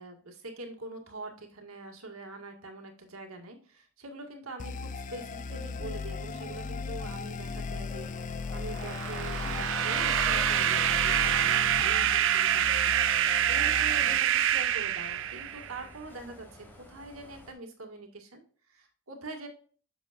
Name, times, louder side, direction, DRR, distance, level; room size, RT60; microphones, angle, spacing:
voice 1, 0.0-12.9 13.5-19.5, right 2 dB, 85° right, 3 dB, 2.0 m, -44 dB
sound 1, 4.6-14.2, left 4 dB, 35° left, 0.4 m, -37 dB
sound 2, 7.5-17.5, equal, 10° left, 1.5 m, -48 dB
sound 3, 8.8-15.8, right 11 dB, 60° right, 0.5 m, -26 dB
8.5 x 6.8 x 2.5 m, 0.43 s
head